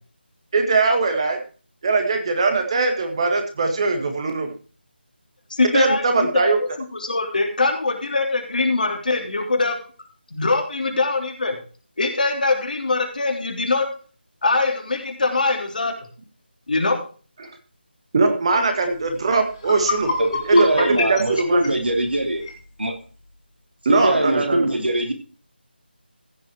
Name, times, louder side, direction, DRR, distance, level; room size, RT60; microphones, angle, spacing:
voice 1, 0.5-1.4 1.8-4.5 5.7-6.6 17.4-17.5 18.1-20.1 20.5-21.7 23.9-24.7, right 3 dB, 30° right, 5 dB, 1.9 m, -21 dB
voice 2, 5.5-6.0 6.3-6.7 7.0-9.7 10.3-11.6 12.0-13.9 14.4-15.9 16.7-17.0, left 3 dB, 50° left, 3 dB, 3.3 m, -22 dB
sound 1, 19.1-19.2 19.5-22.6, left 4 dB, 25° left, 2.4 m, -28 dB
voice 3, 20.2-22.5 22.8-22.9 23.9-25.1, right 1 dB, 70° right, 4 dB, 2.9 m, -21 dB
15.5 x 6.3 x 4.7 m, 0.38 s
figure-of-eight pair, 160°, 6 cm